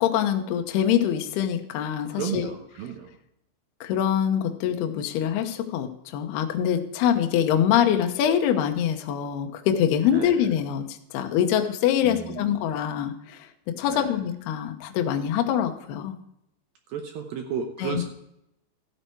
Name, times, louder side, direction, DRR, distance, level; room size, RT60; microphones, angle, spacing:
voice 1, 0.0-2.5 3.8-16.1 17.8-18.0, left 9 dB, 75° left, 5 dB, 2.6 m, -24 dB
voice 2, 2.1-3.2 10.1-10.4 12.0-12.7 13.9-14.2 16.9-18.0, right 7 dB, 80° right, 4 dB, 2.1 m, -33 dB
13.5 x 8.8 x 4.6 m, 0.80 s
omnidirectional pair, 5.4 m